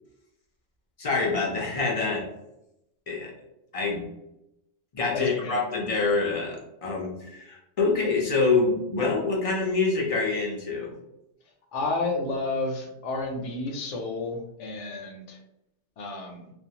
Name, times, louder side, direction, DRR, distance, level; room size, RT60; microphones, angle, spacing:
voice 1, 1.0-2.2 3.1-3.3 3.7-4.1 4.9-10.9, left 3 dB, 55° left, -1 dB, 0.4 m, -26 dB
voice 2, 5.1-5.6 11.7-15.4 16.0-16.5, left 3 dB, 75° left, 1 dB, 0.9 m, -31 dB
2.5 x 2.1 x 2.7 m, 0.87 s
omnidirectional pair, 1.2 m